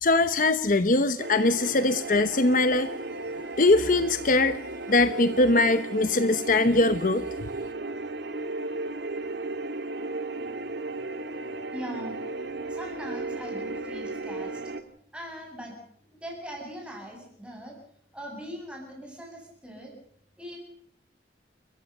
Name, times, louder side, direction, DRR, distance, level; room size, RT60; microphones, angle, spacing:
voice 1, 0.0-2.9 3.6-4.6 4.9-7.5, left 2 dB, 50° left, 11 dB, 0.9 m, -22 dB
sound 1, 1.2-14.8, right 2 dB, 75° right, 1.9 m, -35 dB
voice 2, 11.7-12.2 12.7-14.6 15.1-15.8 16.0-17.8 18.1-19.9 20.4-20.6, equal, 5° right, 0 dB, 7.8 m, -40 dB
30.0 x 15.0 x 6.7 m, 0.65 s
head